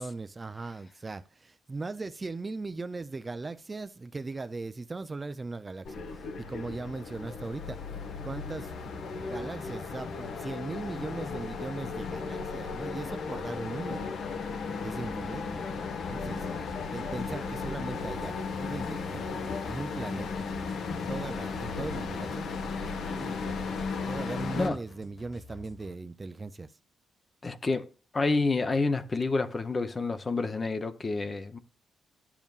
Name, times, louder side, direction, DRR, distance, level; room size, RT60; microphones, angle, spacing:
voice 1, 0.0-7.8 8.2-8.9 9.2-14.1 14.6-15.6 16.1-16.5 16.9-20.4 20.9-22.5 23.1-23.6 24.0-26.8, right 3 dB, 20° right, 0.4 m, -39 dB
sound 1, 5.9-24.7, left 4 dB, 65° left, 1.2 m, -36 dB
sound 2, 9.0-19.6, left 2 dB, 85° left, 1.8 m, -45 dB
sound 3, 16.1-25.9, left 2 dB, 50° left, 1.6 m, -49 dB
voice 2, 27.4-27.9 28.1-31.6, left 3 dB, 25° left, 0.7 m, -28 dB
12.0 x 7.2 x 2.4 m
wide cardioid pair, 160°, 0 cm